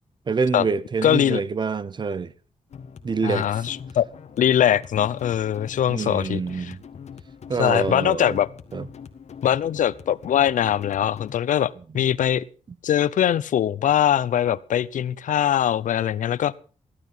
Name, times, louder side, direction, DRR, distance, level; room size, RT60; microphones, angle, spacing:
voice 1, 0.3-2.3 3.0-3.7 5.9-6.8 7.5-8.4 8.7-8.9 11.9-12.0, right 5 dB, 35° right, 0.7 m, -26 dB
voice 2, 1.0-1.4 3.2-4.1 4.4-6.7 7.6-8.5 9.4-12.4 12.8-16.6, left 10 dB, 80° left, 0.7 m, -22 dB
sound 1, 2.7-11.4, left 6 dB, 60° left, 1.7 m, -43 dB
16.5 x 12.5 x 5.7 m
wide cardioid pair, 140°, 13 cm